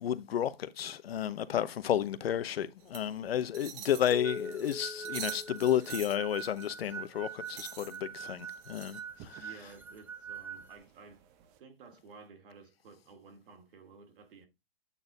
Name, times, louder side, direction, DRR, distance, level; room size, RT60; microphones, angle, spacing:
voice 1, 0.0-9.4, left 10 dB, 90° left, 0.9 m, -32 dB
sound 1, 2.8-11.6, right 10 dB, 35° right, 0.9 m, -48 dB
sound 2, 4.1-6.5, left 5 dB, 35° left, 1.7 m, -43 dB
sound 3, 4.2-10.8, right 7 dB, 5° right, 0.6 m, -44 dB
voice 2, 9.4-11.2 11.6-14.5, right 4 dB, 65° right, 2.5 m, -54 dB
8.6 x 4.1 x 4.0 m
hypercardioid pair, 140°, 29 cm